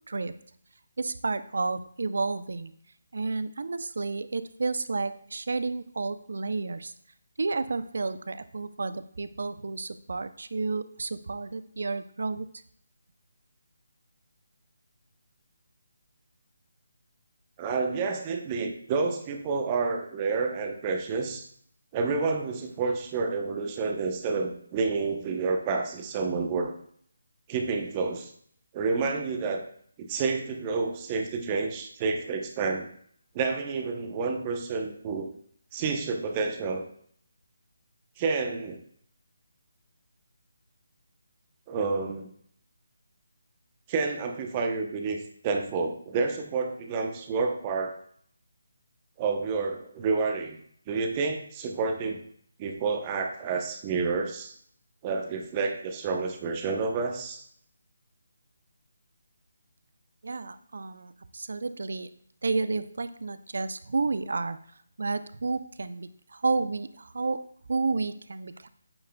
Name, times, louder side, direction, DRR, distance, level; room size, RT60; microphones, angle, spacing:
voice 1, 1.0-2.7 3.1-6.9 7.4-12.5 60.2-62.1 62.4-64.6 65.0-68.7, right 3 dB, 65° right, 13 dB, 0.5 m, -31 dB
voice 2, 17.6-21.4 21.9-26.7 27.5-28.3 28.7-29.6 30.0-32.9 33.3-35.3 35.7-36.9 38.2-38.8 41.7-42.3 43.9-47.9 49.2-50.6 50.9-52.2 52.6-54.5 55.0-57.4, right 4 dB, 25° right, 4 dB, 0.8 m, -29 dB
8.7 x 6.6 x 2.3 m, 0.62 s
figure-of-eight pair, 150°, 0 cm